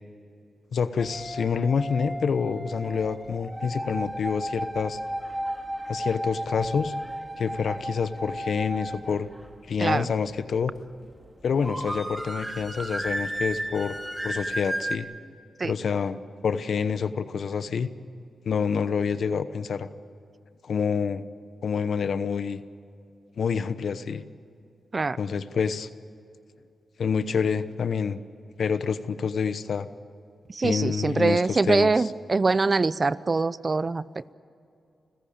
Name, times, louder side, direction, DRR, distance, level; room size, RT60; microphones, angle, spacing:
voice 1, 0.7-5.0 5.9-6.9 7.4-9.3 9.7-10.7 11.4-13.9 14.2-15.1 15.6-17.9 18.4-19.9 20.6-21.2 21.6-22.6 23.4-24.2 25.2-25.9 27.0-28.2 28.6-29.9 30.6-32.1, left 6 dB, 70° left, 13 dB, 1.0 m, -27 dB
sound 1, 1.0-15.0, right 1 dB, 15° right, 2.6 m, -34 dB
voice 2, 30.5-34.3, right 3 dB, 45° right, 18 dB, 0.7 m, -24 dB
29.5 x 15.5 x 8.9 m, 2.6 s
supercardioid pair, 45°, 0 cm